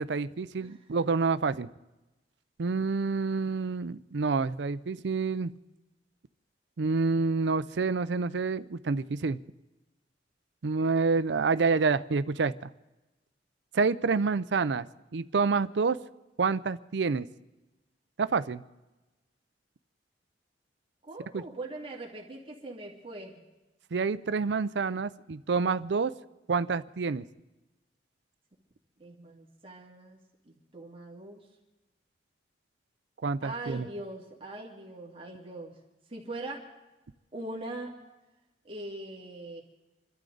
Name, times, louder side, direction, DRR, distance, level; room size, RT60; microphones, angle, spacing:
voice 1, 0.0-1.7 2.6-5.5 6.8-9.4 10.6-12.7 13.7-14.9 15.1-16.0 16.4-17.3 18.2-18.6 21.3-21.4 23.9-26.1 26.5-27.2 33.2-33.9, right 4 dB, 70° right, 15 dB, 0.5 m, -28 dB
voice 2, 21.0-23.4 29.0-30.2 30.5-31.4 33.4-35.7 36.1-36.6 37.3-37.9 38.6-39.6, right 2 dB, 30° right, -1 dB, 2.3 m, -41 dB
27.5 x 12.5 x 3.9 m, 1.1 s
head